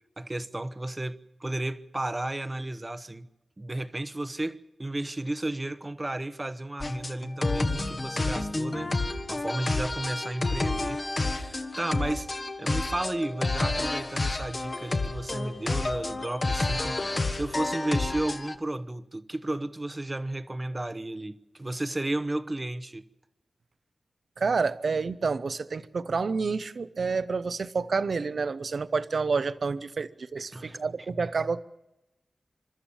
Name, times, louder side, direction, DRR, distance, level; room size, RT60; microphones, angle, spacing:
voice 1, 0.2-3.3 3.6-12.3 12.6-23.0 30.5-30.8, right 1 dB, 25° right, 0.9 m, -33 dB
sound 1, 6.8-18.5, left 2 dB, 40° left, 1.4 m, -30 dB
voice 2, 24.4-31.6, right 4 dB, 65° right, 0.8 m, -29 dB
27.5 x 13.0 x 7.2 m
wide cardioid pair, 80°, 0 cm